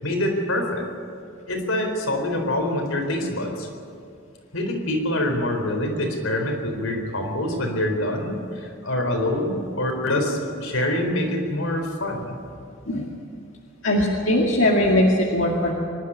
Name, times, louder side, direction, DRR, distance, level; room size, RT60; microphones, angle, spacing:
voice 1, 0.0-0.9 1.5-3.7 4.5-12.4, left 1 dB, 90° left, 3 dB, 4.3 m, -25 dB
voice 2, 13.8-15.7, left 1 dB, 70° left, -2 dB, 2.3 m, -20 dB
25.0 x 12.0 x 9.9 m, 2.3 s
head